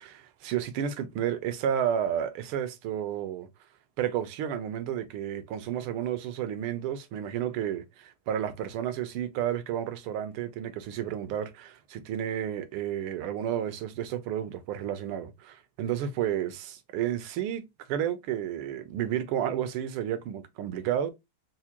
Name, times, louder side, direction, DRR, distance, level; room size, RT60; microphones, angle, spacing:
voice 1, 0.0-3.5 4.0-17.6 17.9-21.1, right 10 dB, 85° right, 1.5 m, -31 dB
4.7 x 2.1 x 2.9 m
omnidirectional pair, 2.3 m